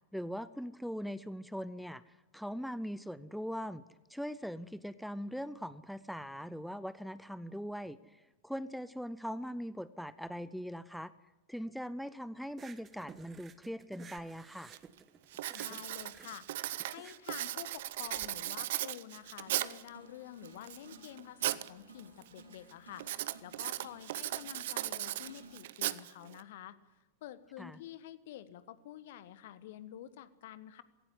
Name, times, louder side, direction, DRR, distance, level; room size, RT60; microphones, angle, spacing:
voice 1, 0.1-3.8 4.1-11.1 11.5-14.7 27.6-27.8, equal, ahead, 16 dB, 0.6 m, -41 dB
sound 1, 12.5-18.3, right 6 dB, 20° right, 1.3 m, -54 dB
Writing, 14.2-14.3 14.7-15.0 15.3-19.9 20.4-21.7 22.0-22.4 23.0-26.4, right 14 dB, 55° right, 0.8 m, -37 dB
voice 2, 15.5-16.5 16.9-26.8 27.2-30.8, left 12 dB, 55° left, 14 dB, 1.3 m, -49 dB
sound 2, 19.1-25.5, right 2 dB, 80° right, 6.8 m, -57 dB
17.5 x 16.5 x 9.8 m, 1.1 s
figure-of-eight pair, 90°, 0 cm